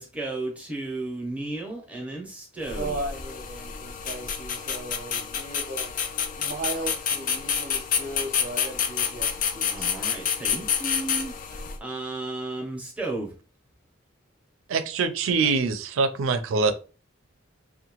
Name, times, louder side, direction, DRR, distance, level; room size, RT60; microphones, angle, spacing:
voice 1, 0.0-2.9 9.7-13.3, right 2 dB, 5° right, -1 dB, 0.7 m, -34 dB
sound 1, 2.6-11.8, left 7 dB, 40° left, 0.3 m, -29 dB
voice 2, 2.7-6.0 6.4-9.9, right 2 dB, 45° right, 4 dB, 0.6 m, -36 dB
voice 3, 14.7-16.7, right 4 dB, 85° right, 11 dB, 0.4 m, -24 dB
2.7 x 2.2 x 2.9 m, 0.35 s
head